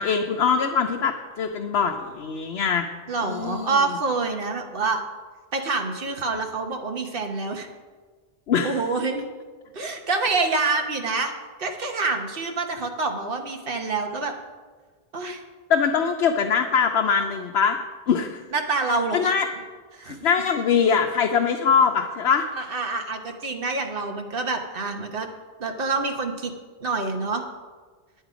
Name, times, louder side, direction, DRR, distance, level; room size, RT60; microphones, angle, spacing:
voice 1, 0.0-2.9 3.2-3.8 8.5-8.8 15.7-17.8 18.1-18.4 19.1-19.5 20.1-22.5, left 6 dB, 85° left, 4 dB, 1.0 m, -22 dB
voice 2, 3.1-5.0 5.5-7.7 8.6-9.2 9.7-11.3 11.6-14.3 15.1-15.4 18.5-19.3 19.9-20.2 22.6-25.3 25.6-26.5 26.8-27.4, right 3 dB, 60° right, 3 dB, 1.3 m, -26 dB
10.5 x 8.0 x 5.0 m, 1.5 s
omnidirectional pair, 1.1 m